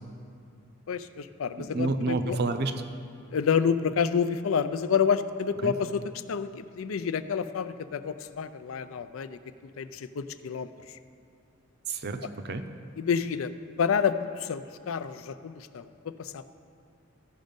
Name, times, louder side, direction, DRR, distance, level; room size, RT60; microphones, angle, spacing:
voice 1, 0.9-2.4 3.3-9.4 9.8-11.0 13.0-13.5 13.8-16.5, left 6 dB, 90° left, 12 dB, 0.4 m, -29 dB
voice 2, 1.6-2.7 5.6-5.7 11.9-12.6, right 3 dB, 55° right, 8 dB, 0.6 m, -29 dB
14.5 x 5.2 x 5.3 m, 2.4 s
head